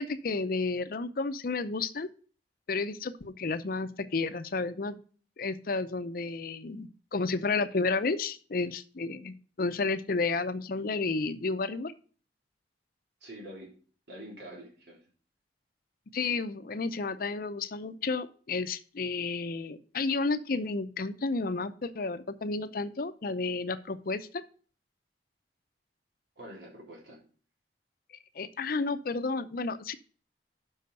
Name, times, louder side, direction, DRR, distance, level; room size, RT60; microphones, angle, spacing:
voice 1, 0.0-2.1 2.7-5.0 5.4-11.9 16.1-24.4 28.4-29.9, left 3 dB, 55° left, 12 dB, 0.6 m, -31 dB
voice 2, 13.2-13.7 14.1-15.1 26.4-27.2, right 1 dB, 75° right, -2 dB, 3.5 m, -46 dB
6.8 x 5.6 x 6.6 m, 0.40 s
head